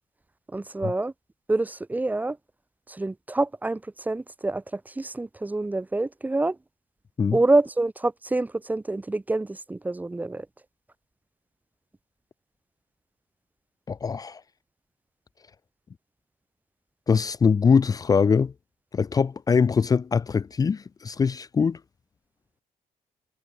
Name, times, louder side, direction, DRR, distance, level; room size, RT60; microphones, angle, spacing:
voice 1, 0.5-1.1 1.5-2.4 2.9-6.6 7.3-10.5, right 2 dB, 10° right, 1.0 m, -26 dB
voice 2, 13.9-14.4 17.1-18.5 18.9-21.8, left 5 dB, 30° left, 0.7 m, -22 dB
cardioid pair, 140°, 13 cm